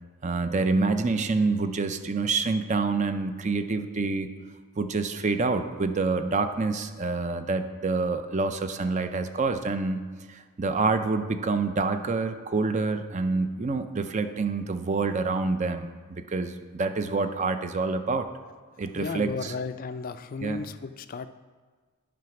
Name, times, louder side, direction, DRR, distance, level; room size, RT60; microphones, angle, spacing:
voice 1, 0.2-4.3 4.8-10.0 10.3-16.0 16.3-18.3 18.8-19.5 20.4-20.6, right 3 dB, 30° right, 9 dB, 0.4 m, -27 dB
voice 2, 18.9-21.3, left 5 dB, 40° left, 11 dB, 0.3 m, -34 dB
9.4 x 5.0 x 5.9 m, 1.5 s
head